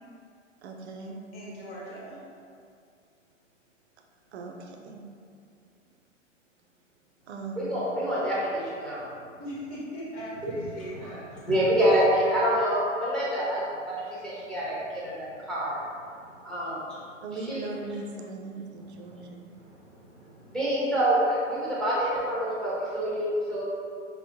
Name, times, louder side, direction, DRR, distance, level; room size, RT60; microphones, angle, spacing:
voice 1, 0.6-1.2 4.3-5.0 7.3-8.0 17.2-19.5, right 3 dB, 60° right, 2 dB, 0.5 m, -39 dB
voice 2, 1.3-2.2 9.4-11.3, equal, 25° left, -6 dB, 1.0 m, -39 dB
voice 3, 7.6-9.1 10.4-10.5 11.5-15.8 16.4-17.0 17.3-17.7 20.5-23.6, equal, ahead, -9 dB, 0.6 m, -27 dB
5.3 x 2.0 x 2.9 m, 2.3 s
hypercardioid pair, 120°, 39 cm